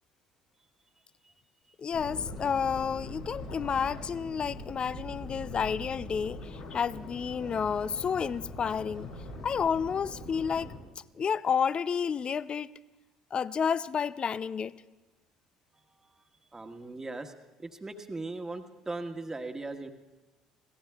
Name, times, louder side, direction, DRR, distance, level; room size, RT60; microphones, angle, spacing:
voice 1, 1.8-9.1 9.4-10.7 11.2-12.7 13.3-14.8, left 7 dB, 35° left, 0.4 m, -30 dB
sound 1, 1.9-10.8, left 1 dB, 85° left, 4.3 m, -42 dB
voice 2, 16.5-17.3 17.6-19.9, right 2 dB, 20° right, 1.4 m, -39 dB
27.0 x 17.5 x 2.4 m
hypercardioid pair, 60°, 3 cm